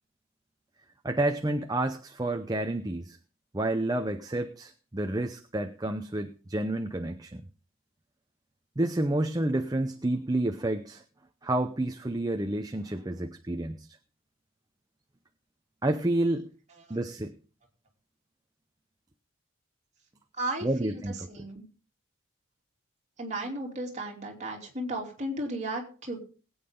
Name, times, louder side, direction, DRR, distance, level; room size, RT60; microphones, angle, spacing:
voice 1, 1.0-3.2 3.5-7.4 8.8-11.0 11.4-13.9 15.8-16.5 16.9-17.3 20.6-21.1, right 1 dB, 20° right, 7 dB, 0.7 m, -29 dB
voice 2, 20.3-21.0 21.3-21.6 23.2-26.2, right 1 dB, 35° right, 0 dB, 3.0 m, -35 dB
20.5 x 8.7 x 3.7 m, 0.37 s
head